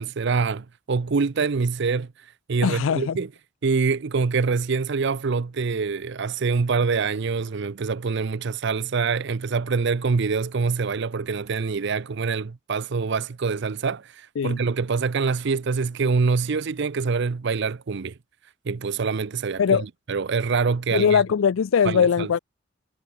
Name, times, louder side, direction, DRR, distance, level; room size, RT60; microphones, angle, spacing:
voice 1, 0.0-2.1 2.5-3.3 3.6-18.1 18.7-19.6 20.1-21.2 21.8-22.3, right 4 dB, 55° right, 0.5 m, -25 dB
voice 2, 2.6-3.2 14.4-14.6 19.6-19.8 20.9-22.4, left 7 dB, 70° left, 0.4 m, -21 dB
head